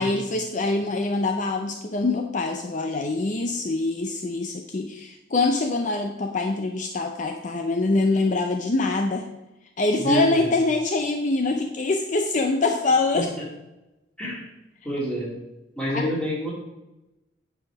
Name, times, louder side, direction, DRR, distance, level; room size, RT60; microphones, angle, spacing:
voice 1, 0.0-9.3 9.8-13.3 15.9-16.1, left 3 dB, 40° left, 4 dB, 0.5 m, -24 dB
voice 2, 10.0-10.5 14.2-14.4 14.8-15.3 15.8-16.5, equal, 5° left, -5 dB, 2.5 m, -27 dB
8.8 x 4.8 x 5.9 m, 0.99 s
head